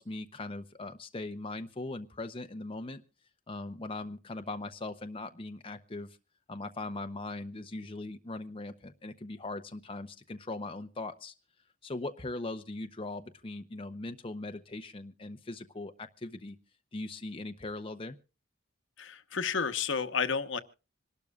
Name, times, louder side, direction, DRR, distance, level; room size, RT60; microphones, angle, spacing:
voice 1, 0.0-3.0 3.5-6.2 6.5-11.3 11.8-16.6 16.9-18.2, left 2 dB, 30° left, 8 dB, 0.7 m, -40 dB
voice 2, 19.0-20.6, left 5 dB, 70° left, 9 dB, 1.1 m, -31 dB
26.0 x 12.0 x 2.4 m, 0.33 s
head